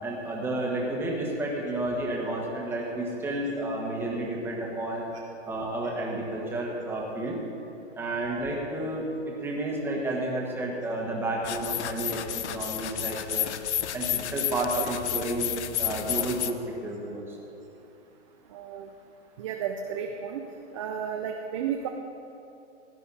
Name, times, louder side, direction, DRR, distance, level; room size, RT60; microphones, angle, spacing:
voice 1, 0.0-5.1 5.5-7.4 8.0-12.2 12.5-13.5 13.9-17.4, right 1 dB, 5° right, -3 dB, 1.5 m, -31 dB
sound 1, 11.4-16.5, left 10 dB, 70° left, 0.8 m, -31 dB
voice 2, 18.5-18.9 19.4-20.4 20.7-21.9, right 8 dB, 30° right, 3 dB, 0.5 m, -33 dB
16.5 x 10.0 x 4.2 m, 2.7 s
hypercardioid pair, 155°, 35 cm